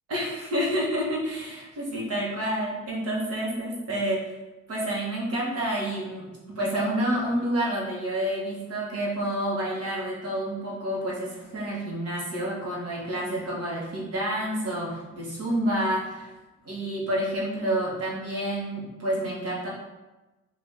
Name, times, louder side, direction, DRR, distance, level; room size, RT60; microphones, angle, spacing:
voice 1, 0.1-4.3 4.7-16.3 16.6-19.7, right 1 dB, 55° right, -5 dB, 1.2 m, -29 dB
2.7 x 2.6 x 3.4 m, 1.1 s
cardioid pair, 90°, 30 cm